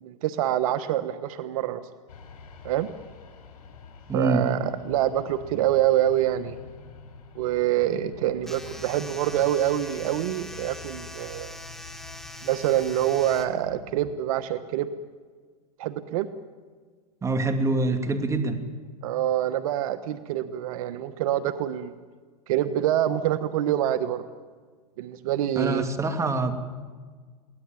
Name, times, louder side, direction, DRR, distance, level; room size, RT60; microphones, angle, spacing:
voice 1, 0.0-1.8 2.6-2.9 4.1-6.6 7.3-11.5 12.4-14.9 15.8-16.3 19.0-21.9 22.5-24.2 25.0-25.8, right 12 dB, 65° right, 12 dB, 1.2 m, -26 dB
sound 1, 2.1-14.1, left 5 dB, 80° left, 4.5 m, -46 dB
voice 2, 4.1-4.5 17.2-18.6 25.6-26.6, right 2 dB, 15° right, 7 dB, 2.5 m, -25 dB
sound 2, 8.4-13.5, left 1 dB, ahead, 2.4 m, -42 dB
23.0 x 18.0 x 9.1 m, 1.5 s
hypercardioid pair, 120°, 20 cm